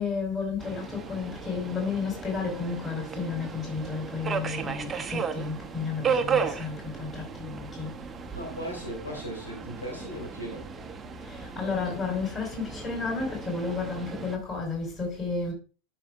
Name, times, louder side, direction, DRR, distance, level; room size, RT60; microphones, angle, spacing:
voice 1, 0.0-7.9 11.2-15.5, left 4 dB, 25° left, 4.5 m, -32 dB
Subway metro underground, 0.6-14.4, right 6 dB, 20° right, 0.7 m, -35 dB
voice 2, 8.3-10.7, equal, 80° left, 2.8 m, -37 dB
11.5 x 5.9 x 2.4 m
figure-of-eight pair, 90°, 0 cm